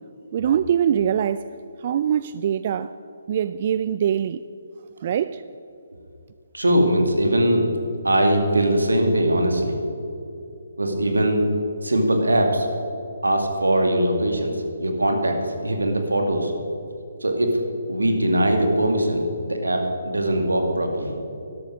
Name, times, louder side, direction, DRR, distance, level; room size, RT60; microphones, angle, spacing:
voice 1, 0.3-1.4 1.8-2.9 3.3-4.4 5.0-5.4, right 9 dB, 40° right, 13 dB, 0.3 m, -23 dB
voice 2, 6.5-7.7 8.0-9.8 10.8-11.4 11.8-12.7 13.2-15.4 15.6-16.5 17.2-17.6 17.9-21.1, right 1 dB, 80° right, 4 dB, 2.3 m, -21 dB
12.5 x 12.0 x 6.3 m, 2.7 s
figure-of-eight pair, 140°, 0 cm